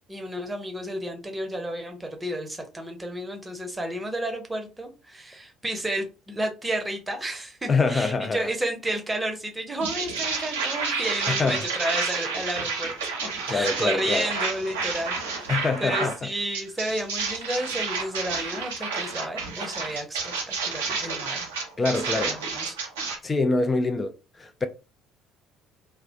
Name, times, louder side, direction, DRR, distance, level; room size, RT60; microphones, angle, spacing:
voice 1, 0.1-12.9 13.5-15.5 15.8-20.3 20.7-21.5 22.1-22.7, right 1 dB, 15° right, 0.7 m, -31 dB
voice 2, 7.7-8.5 11.3-11.6 13.5-14.3 15.5-16.3 21.8-22.4 23.2-24.1 24.4-24.6, left 3 dB, 25° left, 0.4 m, -25 dB
sound 1, 9.8-16.2 16.5-23.2, right 4 dB, 70° right, 0.5 m, -30 dB
2.3 x 2.1 x 2.7 m
figure-of-eight pair, 55°, 0 cm